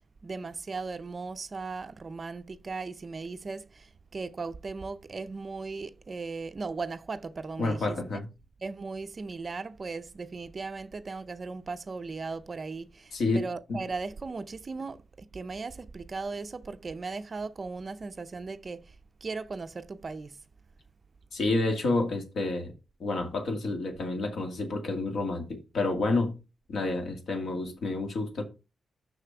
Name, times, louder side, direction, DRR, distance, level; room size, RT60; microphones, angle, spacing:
voice 1, 0.2-8.0 8.6-18.9 19.2-20.4, right 4 dB, 30° right, 0.5 m, -37 dB
voice 2, 7.6-8.3 13.1-13.4 13.7-13.8 21.3-22.7 23.0-26.4 26.7-28.4, left 2 dB, 65° left, 2.2 m, -29 dB
6.7 x 6.1 x 4.8 m
wide cardioid pair, 160°, 0 cm